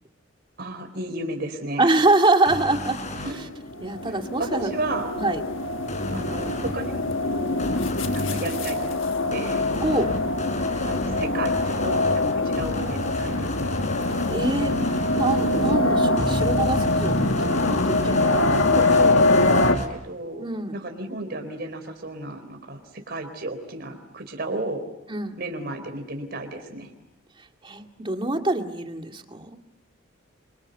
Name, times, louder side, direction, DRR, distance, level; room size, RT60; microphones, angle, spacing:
voice 1, 0.6-1.8 3.2-3.4 4.4-5.1 6.1-7.2 8.1-9.6 10.9-13.5 18.5-24.8 25.4-26.9, right 2 dB, 55° right, 5 dB, 4.0 m, -33 dB
voice 2, 1.8-3.0 3.8-4.7 5.2-5.4 9.8-10.1 14.3-14.7 15.2-18.8 20.4-20.8 25.1-25.4 27.6-29.6, right 2 dB, 25° right, 4 dB, 2.2 m, -25 dB
sound 1, 2.5-3.3 5.9-6.8 7.6-8.5 9.3-15.8 16.2-19.9, left 1 dB, 35° left, 4.4 m, -31 dB
sound 2, 3.5-19.8, left 2 dB, 70° left, 1.5 m, -24 dB
28.0 x 25.0 x 8.1 m, 0.87 s
head